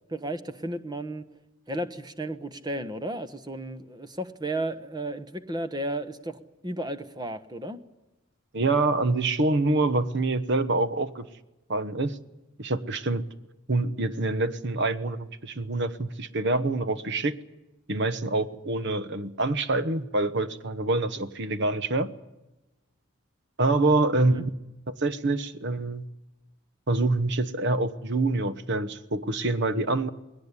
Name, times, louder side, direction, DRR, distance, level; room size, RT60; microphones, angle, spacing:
voice 1, 0.1-1.2 1.7-7.8 24.2-24.4, right 1 dB, 20° right, 11 dB, 1.1 m, -33 dB
voice 2, 8.5-11.3 11.7-12.2 12.6-13.3 13.7-17.4 17.9-22.1 23.6-24.5 24.9-26.0 26.9-30.1, right 2 dB, 55° right, 13 dB, 1.1 m, -26 dB
20.0 x 18.0 x 9.9 m, 1.0 s
head